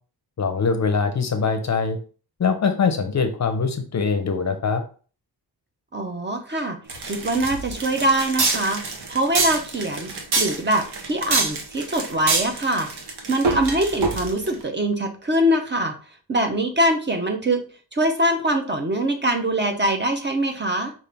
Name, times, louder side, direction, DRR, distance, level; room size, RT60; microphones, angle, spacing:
voice 1, 0.4-2.0 2.4-4.8, left 5 dB, 40° left, 8 dB, 0.5 m, -22 dB
voice 2, 5.9-8.8 9.1-10.1 10.4-12.9 13.3-15.9 16.3-17.6 17.9-20.9, right 1 dB, 25° right, 4 dB, 0.5 m, -23 dB
sound 1, 6.9-14.5, right 3 dB, 65° right, 1.0 m, -26 dB
5.3 x 2.5 x 3.3 m, 0.39 s
wide cardioid pair, 155°, 42 cm